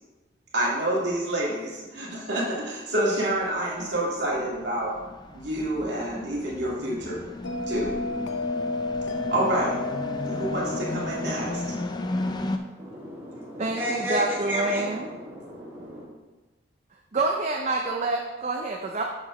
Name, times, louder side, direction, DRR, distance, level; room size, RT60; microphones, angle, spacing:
voice 1, 0.5-4.9 5.3-7.2 7.7-7.9 9.3-9.8 10.3-11.6, right 1 dB, 65° right, -5 dB, 1.9 m, -28 dB
sound 1, 3.3-12.6, left 2 dB, 25° left, 0.4 m, -35 dB
Bell, 7.4-12.5, left 2 dB, 85° left, 0.5 m, -32 dB
voice 2, 12.8-16.1, equal, 10° right, -8 dB, 2.2 m, -32 dB
voice 3, 13.6-15.1 16.9-19.0, right 2 dB, 40° right, 1 dB, 0.5 m, -27 dB
6.8 x 6.6 x 3.1 m, 1.2 s
head